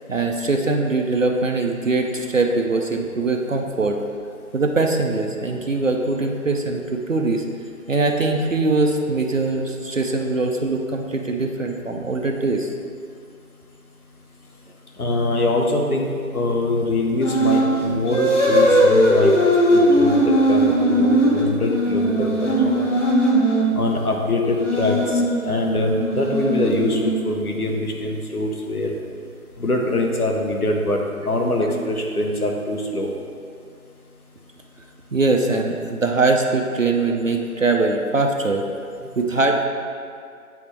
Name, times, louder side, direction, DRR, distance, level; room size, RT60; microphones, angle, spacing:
voice 1, 0.1-4.0 4.5-7.5 7.9-12.7 35.1-38.6 39.2-39.7, right 3 dB, 60° right, 2 dB, 0.5 m, -22 dB
voice 2, 15.0-19.3 19.7-20.2 20.5-22.9 23.7-29.0 29.6-33.1, left 2 dB, 85° left, 1 dB, 1.0 m, -23 dB
sound 1, 17.2-17.7 18.1-23.7 24.4-27.4, equal, 55° left, 1.2 m, -19 dB
8.5 x 3.5 x 3.3 m, 2.3 s
figure-of-eight pair, 175°, 44 cm